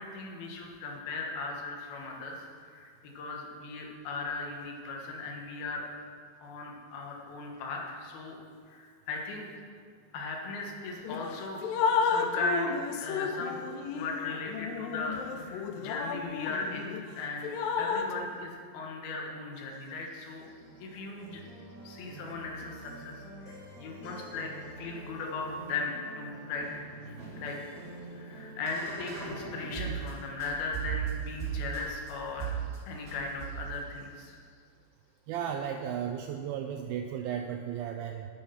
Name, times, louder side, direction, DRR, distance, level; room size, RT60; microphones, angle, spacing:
voice 1, 0.0-2.9 3.1-5.9 6.4-8.4 8.7-9.5 10.1-13.7 13.9-20.5 20.8-21.4 21.8-27.6 28.1-32.5 32.8-34.4, left 3 dB, 70° left, 0 dB, 3.1 m, -38 dB
Drip, 11.0-11.2 11.6-17.0 17.4-18.1, left 6 dB, 85° left, 2.0 m, -32 dB
sound 1, 20.3-30.1 30.4-32.1 32.4-32.8 33.1-33.8, right 7 dB, 25° right, 2.8 m, -41 dB
voice 2, 35.3-38.3, right 8 dB, 90° right, 4 dB, 2.1 m, -34 dB
9.8 x 9.0 x 5.7 m, 2.2 s
omnidirectional pair, 4.8 m